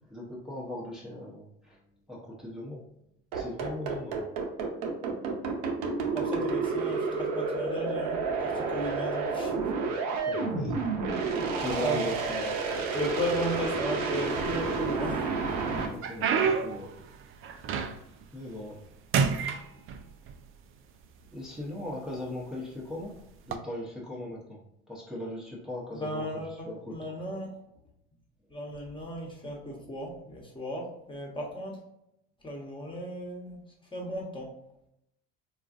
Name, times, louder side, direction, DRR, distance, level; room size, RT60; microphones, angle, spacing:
voice 1, 0.1-1.8 2.1-2.8 3.3-4.3 10.3-10.9 11.3-12.6 12.9-13.0 15.9-16.9 18.3-18.8 21.3-23.1 23.5-24.6 24.9-27.0, left 1 dB, ahead, -5 dB, 0.9 m, -38 dB
sound 1, 3.3-15.9, right 4 dB, 70° right, 0.8 m, -30 dB
voice 2, 6.1-9.5 11.2-11.5 11.8-12.0 12.9-15.3 25.9-27.5 28.5-31.8 32.4-33.6 33.9-34.5, equal, 15° left, -1 dB, 1.1 m, -35 dB
sound 2, 14.3-15.0 15.5-18.2 18.6-18.9 19.1-20.4 21.2-21.3 22.0-22.2 23.4-23.6, right 6 dB, 40° right, 0.4 m, -29 dB
3.8 x 2.4 x 2.5 m, 0.79 s
supercardioid pair, 85°, 32 cm